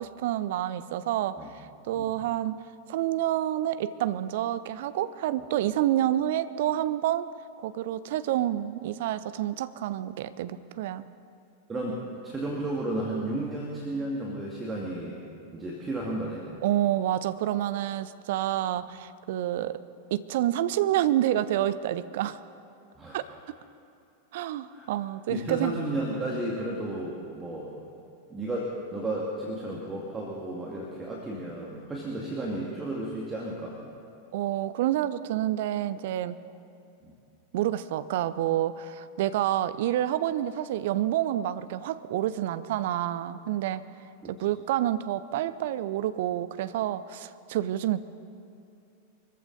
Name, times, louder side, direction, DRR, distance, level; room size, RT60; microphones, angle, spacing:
voice 1, 0.0-2.6 2.9-7.3 7.6-11.0 16.6-19.8 20.1-22.4 23.1-23.2 24.3-25.7 34.3-36.4 37.5-43.8 44.3-48.0, right 12 dB, 55° right, 14 dB, 0.6 m, -28 dB
voice 2, 11.7-15.2 15.5-16.5 23.0-23.2 24.7-24.9 25.3-27.7 28.3-33.8 37.0-37.1 44.2-44.3, right 1 dB, 15° right, -3 dB, 2.2 m, -33 dB
24.0 x 14.5 x 4.0 m, 2.7 s
figure-of-eight pair, 90°, 0 cm